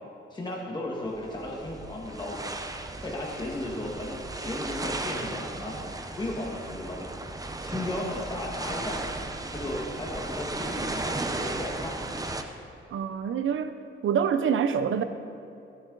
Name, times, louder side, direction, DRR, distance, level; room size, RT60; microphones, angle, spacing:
voice 1, 0.3-2.6 3.0-5.8 6.1-7.3 7.6-9.0 9.5-12.0, left 1 dB, 20° left, -3 dB, 1.6 m, -35 dB
sound 1, 1.1-12.4, right 2 dB, 15° right, 0.7 m, -35 dB
voice 2, 12.9-13.8 14.0-15.0, right 7 dB, 70° right, 10 dB, 0.7 m, -26 dB
15.5 x 10.5 x 3.9 m, 2.6 s
wide cardioid pair, 130°, 21 cm